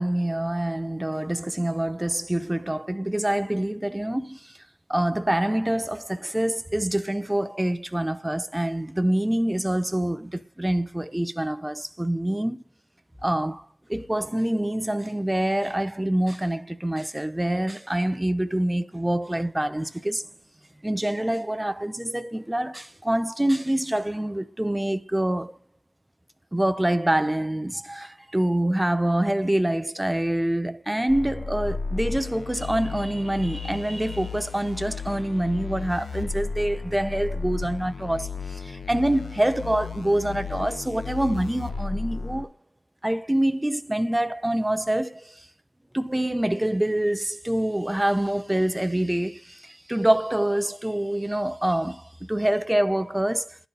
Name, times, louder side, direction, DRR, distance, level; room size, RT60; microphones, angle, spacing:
voice 1, 0.0-4.4 4.9-12.6 13.2-13.6 13.9-20.2 20.8-25.5 26.5-42.5 43.0-45.3 45.9-53.6, right 1 dB, 10° right, 0.6 m, -26 dB
sound 1, 31.1-42.4, left 4 dB, 70° left, 0.7 m, -34 dB
10.5 x 4.1 x 5.4 m
wide cardioid pair, 80°, 0 cm